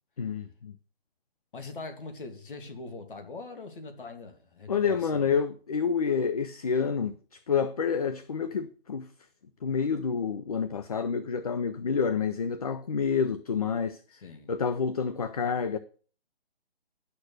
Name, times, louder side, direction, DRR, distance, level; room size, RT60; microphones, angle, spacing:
voice 1, 0.2-0.8 4.7-9.1 9.6-14.0 14.5-15.8, left 6 dB, 40° left, 0.5 m, -28 dB
voice 2, 1.5-5.4 14.2-14.5, left 3 dB, 55° left, 2.6 m, -42 dB
11.0 x 6.7 x 6.3 m
hypercardioid pair, 175°, 31 cm